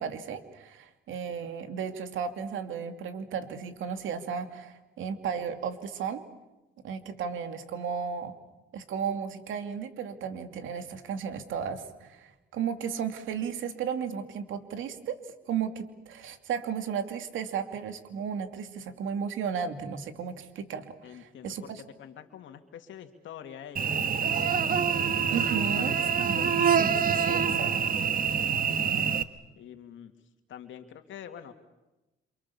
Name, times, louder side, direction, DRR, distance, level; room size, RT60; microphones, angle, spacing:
voice 1, 0.0-6.2 6.8-8.4 8.7-15.2 15.5-21.8 25.3-26.0 26.2-27.9, right 7 dB, 80° right, 7 dB, 2.8 m, -34 dB
voice 2, 21.0-21.7 22.0-24.8 25.5-26.2 28.2-28.5 29.6-30.1 30.5-31.5, left 9 dB, 75° left, 7 dB, 2.6 m, -46 dB
Cricket / Buzz, 23.8-29.2, right 7 dB, 45° right, 1.5 m, -26 dB
28.0 x 27.0 x 7.2 m, 1.0 s
cardioid pair, 90°, 20 cm